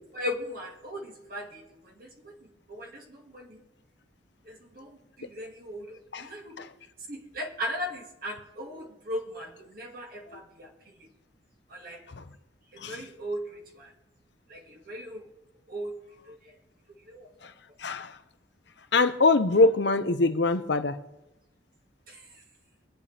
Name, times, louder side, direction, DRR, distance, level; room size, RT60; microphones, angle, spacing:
voice 1, 0.1-2.3 2.7-3.6 4.5-6.6 7.1-11.1 11.7-12.0 12.7-13.9 14.5-15.3 15.7-16.0 16.3-16.5 17.1-17.3 22.1-22.3, equal, 50° right, 2.1 m, -38 dB
voice 2, 18.9-20.9, left 3 dB, 65° left, 0.7 m, -23 dB
23.0 x 8.6 x 3.4 m
head